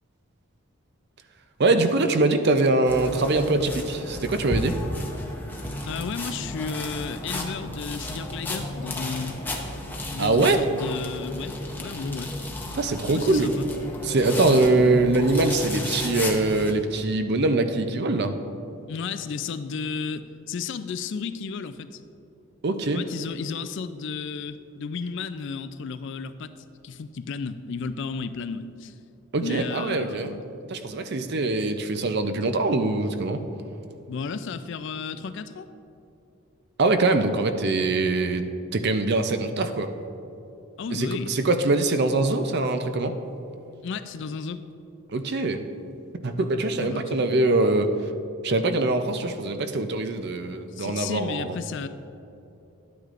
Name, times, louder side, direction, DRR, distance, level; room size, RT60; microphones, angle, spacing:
voice 1, 1.6-4.8 10.2-10.6 12.7-13.5 14.0-18.4 22.6-23.0 29.3-30.3 30.7-33.4 36.8-38.4 38.7-39.9 40.9-43.2 45.1-45.6 46.2-47.9 48.4-51.6, right 2 dB, 50° right, 8 dB, 0.5 m, -23 dB
sound 1, 2.9-16.7, left 1 dB, 10° left, 0.7 m, -33 dB
voice 2, 5.8-9.4 10.1-12.3 13.1-13.7 14.3-15.0 18.9-22.0 22.9-26.5 26.8-28.9 29.4-30.5 34.1-35.7 40.8-41.3 43.8-44.6 46.7-47.5 50.7-51.9, left 5 dB, 55° left, 12 dB, 0.3 m, -33 dB
11.5 x 9.4 x 2.5 m, 2.8 s
head